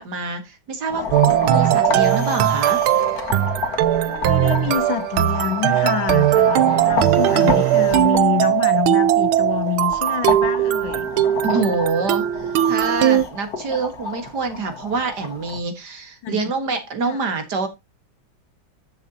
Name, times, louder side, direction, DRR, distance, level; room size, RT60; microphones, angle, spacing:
voice 1, 0.0-2.8 6.6-7.0 11.4-17.7, right 4 dB, 55° right, 2.1 m, -26 dB
sound 1, 0.9-15.6, left 4 dB, 50° left, 1.9 m, -30 dB
sound 2, 1.1-13.2, right 12 dB, 85° right, 1.6 m, -19 dB
voice 2, 4.1-11.1 16.2-16.5 17.0-17.2, left 11 dB, 70° left, 1.3 m, -27 dB
11.5 x 6.9 x 2.8 m
omnidirectional pair, 2.2 m